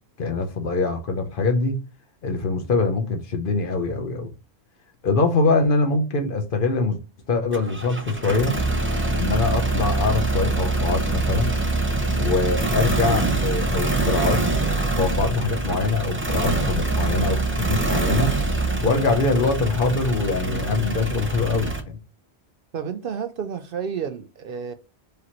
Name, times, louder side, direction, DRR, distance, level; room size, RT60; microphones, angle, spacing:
voice 1, 0.2-1.8 2.2-4.3 5.0-7.0 7.3-8.6 9.2-11.5 12.2-14.5 15.0-18.3 18.8-22.0, left 3 dB, 55° left, 0.9 m, -23 dB
sound 1, 7.5-21.8, right 2 dB, 15° right, 0.5 m, -24 dB
voice 2, 22.7-24.7, right 7 dB, 60° right, 0.7 m, -30 dB
4.9 x 2.9 x 2.9 m
omnidirectional pair, 1.1 m